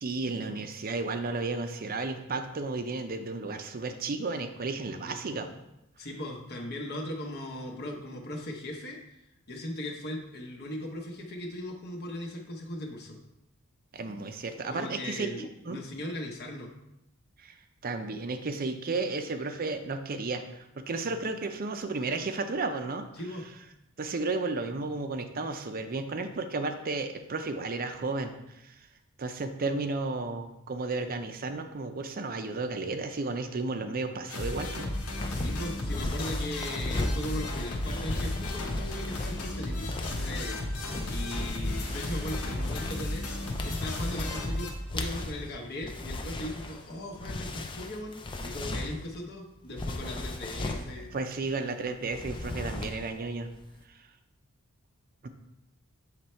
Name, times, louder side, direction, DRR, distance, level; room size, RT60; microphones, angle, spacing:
voice 1, 0.0-5.6 13.9-15.8 17.4-17.6 17.8-23.1 24.0-28.8 29.2-34.9 35.3-35.4 51.1-53.5 55.2-55.3, right 3 dB, 40° right, 7 dB, 0.5 m, -33 dB
voice 2, 5.0-5.4 6.0-13.2 14.7-16.7 21.0-21.2 23.2-23.5 35.3-40.6 41.1-43.3 43.6-51.1, left 1 dB, 45° left, 0 dB, 0.9 m, -38 dB
sound 1, 34.3-44.7, left 1 dB, 85° left, 1.1 m, -34 dB
sound 2, 35.2-49.2 49.7-50.9 52.0-53.2 53.4-53.7, left 2 dB, 20° left, 0.4 m, -36 dB
7.7 x 3.2 x 4.4 m, 0.88 s
head